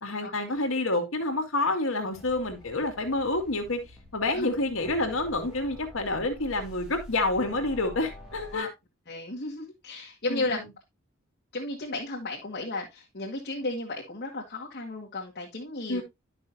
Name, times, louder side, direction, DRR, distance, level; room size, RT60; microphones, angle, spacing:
voice 1, 0.0-3.8 4.1-8.7 10.3-10.6 15.9-16.0, left 2 dB, 75° left, 2.1 m, -28 dB
sound 1, 2.1-8.6, left 1 dB, 5° right, 2.5 m, -47 dB
voice 2, 9.1-10.6 11.5-16.0, left 2 dB, 50° left, 1.8 m, -34 dB
11.5 x 6.1 x 2.7 m
head